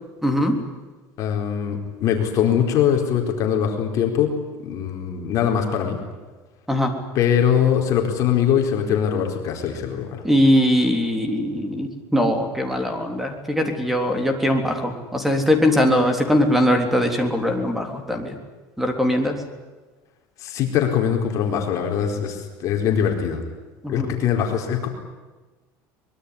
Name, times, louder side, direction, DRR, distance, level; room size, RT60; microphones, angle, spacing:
voice 1, 0.2-0.5 6.7-6.9 10.2-18.4 18.8-19.4 23.8-24.1, equal, 5° right, 6 dB, 3.6 m, -21 dB
voice 2, 1.2-4.3 4.6-6.0 7.1-10.2 20.4-23.4 23.9-24.9, left 8 dB, 45° left, 3 dB, 4.4 m, -22 dB
24.0 x 22.0 x 9.8 m, 1.2 s
cardioid pair, 160°, 8 cm